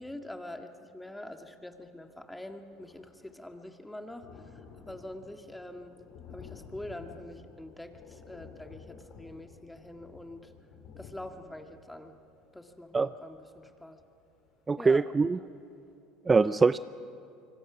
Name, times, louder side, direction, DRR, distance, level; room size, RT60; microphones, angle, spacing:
voice 1, 0.0-6.0 6.3-10.5 11.0-12.2 12.5-14.0 14.8-15.0, left 1 dB, 5° left, 5 dB, 2.0 m, -45 dB
Thunder, 1.7-1.8 2.1-14.7 15.2-15.3 15.6-15.7, left 6 dB, 60° left, 4.0 m, -52 dB
voice 2, 14.7-15.4 16.3-16.8, right 4 dB, 25° right, 15 dB, 0.5 m, -23 dB
26.0 x 24.5 x 6.1 m, 2.5 s
hypercardioid pair, 75°, 0 cm